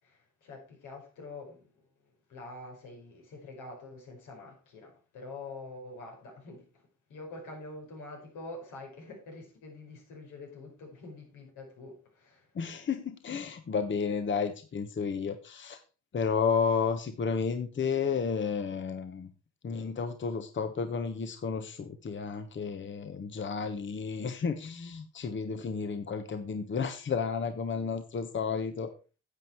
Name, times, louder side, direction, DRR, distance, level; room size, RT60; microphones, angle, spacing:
voice 1, 0.0-1.7 2.3-6.6 7.1-12.5, left 2 dB, 85° left, 5.3 m, -46 dB
voice 2, 12.5-15.8 16.1-19.3 19.6-28.9, left 5 dB, 40° left, 1.1 m, -32 dB
10.0 x 8.0 x 4.5 m
cardioid pair, 90°, 30 cm